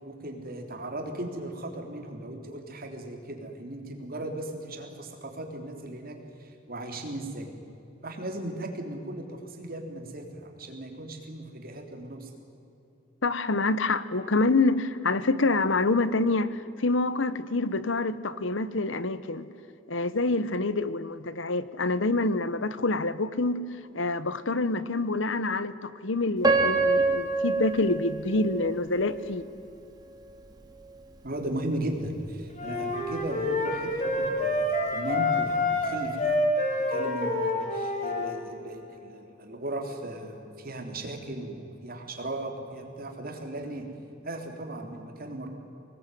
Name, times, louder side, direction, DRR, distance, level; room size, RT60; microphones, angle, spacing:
voice 1, 0.0-7.5 8.0-12.3 31.2-36.4 36.9-43.9 44.2-45.5, right 1 dB, 50° right, 3 dB, 3.7 m, -37 dB
voice 2, 13.2-19.5 19.9-23.6 23.9-29.4, left 2 dB, 70° left, 15 dB, 1.1 m, -26 dB
Piano, 26.4-29.4 30.0-30.1 30.8-31.0, right 3 dB, 20° right, 2.7 m, -26 dB
sound 1, 32.6-38.4, left 2 dB, 40° left, 4.9 m, -27 dB
25.0 x 19.5 x 9.3 m, 2.9 s
head